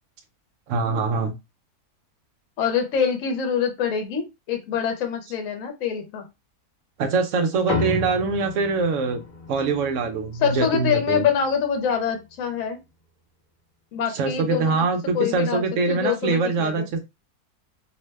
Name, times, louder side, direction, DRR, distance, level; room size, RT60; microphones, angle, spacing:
voice 1, 0.7-1.3 7.0-9.2 9.5-11.3 14.1-17.0, right 4 dB, 70° right, 6 dB, 0.8 m, -23 dB
voice 2, 2.6-6.2 10.4-12.8 13.9-14.8 15.1-16.9, left 7 dB, 65° left, 5 dB, 1.0 m, -25 dB
sound 1, 7.7-12.4, left 2 dB, 45° left, 0.7 m, -33 dB
2.7 x 2.1 x 3.2 m, 0.23 s
omnidirectional pair, 1.6 m